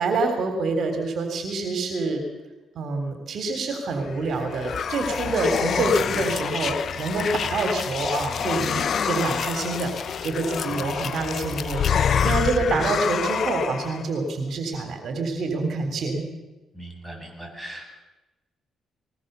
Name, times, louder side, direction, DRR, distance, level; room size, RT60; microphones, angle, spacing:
voice 1, 0.0-2.2 2.8-16.2, right 3 dB, 60° right, 6 dB, 3.6 m, -26 dB
sound 1, 4.1-14.1, left 7 dB, 55° left, 1.0 m, -27 dB
voice 2, 16.7-17.9, right 1 dB, 5° right, 0 dB, 7.7 m, -39 dB
21.0 x 19.5 x 7.0 m, 1.1 s
cardioid pair, 90°, 0 cm